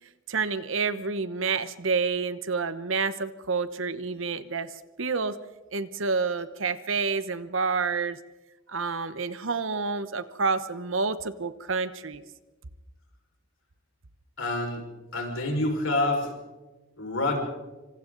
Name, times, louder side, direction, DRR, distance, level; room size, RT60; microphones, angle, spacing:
voice 1, 0.3-4.7 5.0-5.3 5.7-8.2 8.7-12.2, right 4 dB, 70° right, 13 dB, 1.0 m, -28 dB
voice 2, 14.4-14.9 15.1-16.3 17.0-17.4, left 2 dB, 85° left, 1 dB, 5.4 m, -27 dB
26.5 x 25.5 x 4.0 m, 1.1 s
head